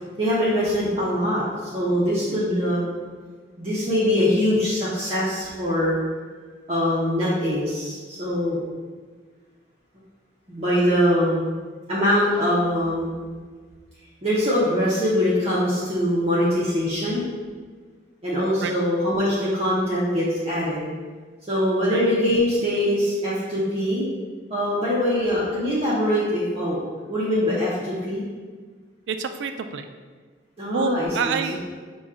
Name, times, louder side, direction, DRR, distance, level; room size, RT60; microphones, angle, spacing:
voice 1, 0.2-2.8 3.6-6.0 6.7-8.6 10.5-11.4 11.9-13.1 14.2-17.2 18.2-20.8 21.5-24.0 24.5-26.8 27.1-28.2 30.6-31.4, equal, 35° right, -8 dB, 0.7 m, -23 dB
voice 2, 29.1-29.8 30.7-31.6, right 6 dB, 80° right, 8 dB, 0.3 m, -27 dB
6.0 x 2.3 x 3.6 m, 1.5 s
head